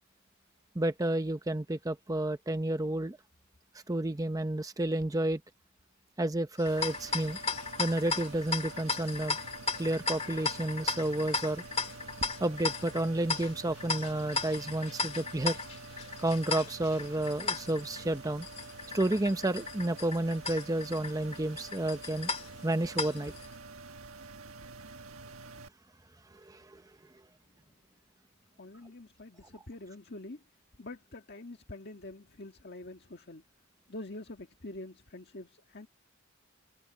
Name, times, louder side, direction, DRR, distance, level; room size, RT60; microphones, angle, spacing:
voice 1, 0.8-3.2 3.9-5.4 6.2-7.4 7.8-9.4 9.8-11.6 12.4-15.6 16.2-18.5 18.9-22.3 22.6-23.3 26.4-26.8, right 1 dB, 15° right, 0.7 m, -31 dB
sound 1, 6.6-23.5, left 4 dB, 30° left, 1.9 m, -36 dB
sound 2, 6.7-25.7, right 3 dB, 70° right, 1.5 m, -48 dB
voice 2, 28.6-30.4 30.8-33.4 33.9-35.9, left 2 dB, 50° left, 1.7 m, -45 dB
head